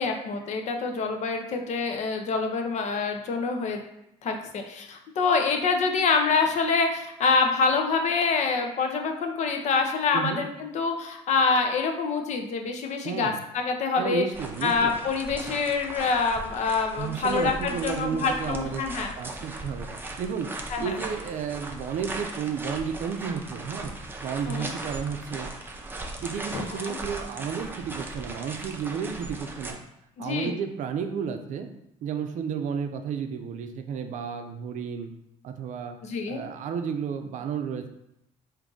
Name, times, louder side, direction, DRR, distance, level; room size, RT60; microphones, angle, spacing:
voice 1, 0.0-3.8 4.2-14.2 14.6-19.1 20.7-20.9 24.5-24.7 26.5-27.0 30.2-30.5 36.0-36.4, left 4 dB, 55° left, 4 dB, 0.6 m, -26 dB
voice 2, 10.1-10.4 13.0-13.4 14.0-15.0 17.0-18.9 19.2-19.9 20.2-20.5 20.8-23.9 24.2-25.5 26.2-29.8 30.2-31.7 32.0-35.1 35.4-36.0 36.3-37.9, right 7 dB, 60° right, 7 dB, 0.5 m, -32 dB
sound 1, 14.3-29.7, right 2 dB, 15° right, 0.5 m, -38 dB
3.5 x 2.6 x 3.8 m, 0.82 s
cardioid pair, 90°, 14 cm